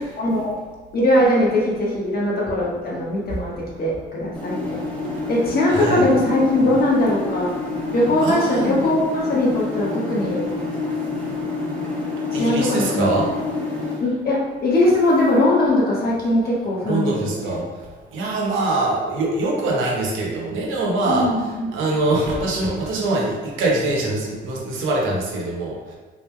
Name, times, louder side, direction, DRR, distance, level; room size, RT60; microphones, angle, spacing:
voice 1, 0.2-0.5 0.9-3.5 3.8-4.8 5.3-7.5 7.9-10.4 12.3-13.4 14.0-17.6 21.1-21.7, left 1 dB, 50° left, -5 dB, 1.2 m, -20 dB
sound 1, 4.3-14.0, left 3 dB, 5° left, 1.2 m, -28 dB
voice 2, 5.7-6.1 8.2-8.8 12.3-13.3 16.9-17.6 18.1-21.3 21.7-25.9, right 2 dB, 85° right, -2 dB, 0.9 m, -23 dB
3.8 x 3.1 x 2.2 m, 1.4 s
cardioid pair, 90°, 20 cm